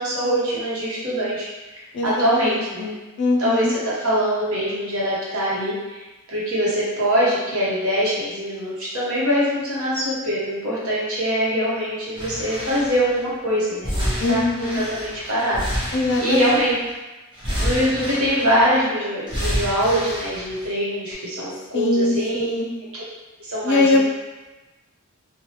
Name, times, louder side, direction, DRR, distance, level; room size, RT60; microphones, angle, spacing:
voice 1, 0.0-1.5 2.0-2.9 3.4-6.0 6.3-16.7 17.6-22.4 22.9-23.0 23.5-24.0, equal, 70° right, -7 dB, 0.9 m, -23 dB
voice 2, 1.9-3.7 14.2-14.8 15.9-16.7 21.7-22.7 23.6-24.0, left 2 dB, 50° left, 0 dB, 0.4 m, -22 dB
sound 1, 12.2-13.2 13.8-16.9 17.3-18.8 19.3-20.7 21.1-21.2, equal, 20° right, 0.9 m, -29 dB
3.1 x 2.2 x 2.8 m, 1.1 s
head